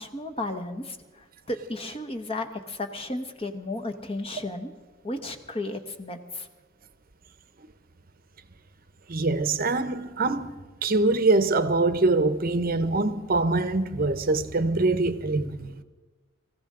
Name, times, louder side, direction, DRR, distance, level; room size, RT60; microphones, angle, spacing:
voice 1, 0.0-4.7 5.0-6.5, left 2 dB, 30° left, 1.1 m, -34 dB
voice 2, 9.1-15.7, right 3 dB, 45° right, 0.8 m, -24 dB
25.5 x 15.0 x 3.8 m
head